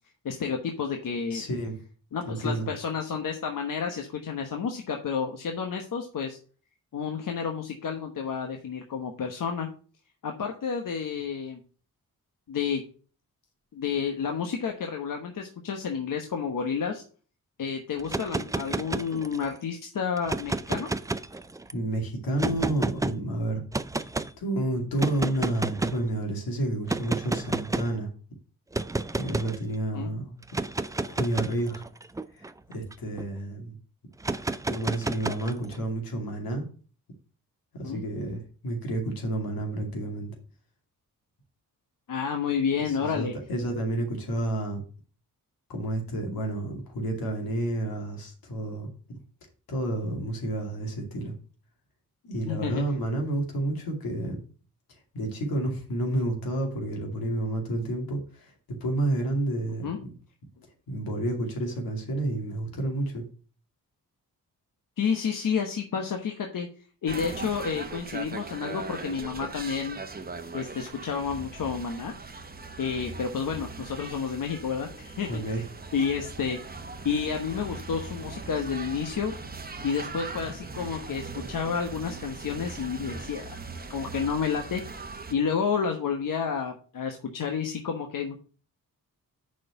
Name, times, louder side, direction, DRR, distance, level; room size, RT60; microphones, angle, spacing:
voice 1, 0.2-1.4 2.1-6.4 6.9-9.7 10.2-11.6 12.5-12.8 13.7-17.0 17.6-20.9 29.9-30.1 37.8-38.0 42.1-43.3 52.5-52.8 59.8-60.0 65.0-66.7 67.0-70.0 70.5-72.1 72.8-75.6 75.9-76.8 77.0-79.3 79.8-83.6 83.9-84.8 85.3-88.4, left 6 dB, 65° left, 4 dB, 1.1 m, -30 dB
voice 2, 1.3-1.8 2.3-2.7 21.7-23.6 24.4-28.1 29.1-30.3 31.1-31.8 32.4-33.8 34.7-36.7 37.7-40.4 42.8-44.8 45.7-49.2 49.7-51.3 52.2-54.4 55.1-58.5 58.8-60.2 60.9-63.2 75.3-75.6, right 1 dB, 80° left, 1 dB, 2.5 m, -30 dB
sound 1, 18.0-19.5 20.2-21.7 22.4-23.1 23.7-24.3 25.0-26.1 26.9-28.0 28.7-29.6 30.4-33.3 34.2-35.8, right 2 dB, 10° right, 0.4 m, -31 dB
sound 2, 67.1-85.3, right 4 dB, 25° right, 1.0 m, -40 dB
6.4 x 4.5 x 6.6 m, 0.40 s
cardioid pair, 75°, 35 cm